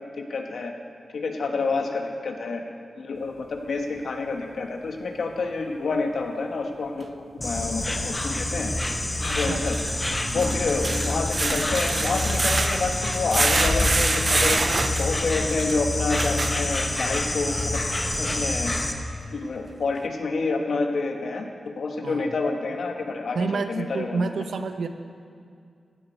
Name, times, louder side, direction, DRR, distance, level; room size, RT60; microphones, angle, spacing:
voice 1, 0.2-0.7 1.1-2.6 3.0-7.1 7.3-8.7 9.2-9.8 10.3-14.6 15.0-17.8 18.2-18.7 19.3-24.2, left 3 dB, 65° left, 3 dB, 1.2 m, -28 dB
sound 1, 7.0-7.1 9.5-17.2 17.7-17.8 18.3-18.4, right 3 dB, 30° right, 0.5 m, -27 dB
Insect, 7.4-18.9, left 1 dB, 15° left, 0.9 m, -27 dB
voice 2, 9.3-9.9 10.3-10.6 22.0-22.3 23.3-24.9, right 4 dB, 80° right, 8 dB, 0.7 m, -30 dB
16.0 x 10.5 x 4.5 m, 2.3 s
wide cardioid pair, 170°, 0 cm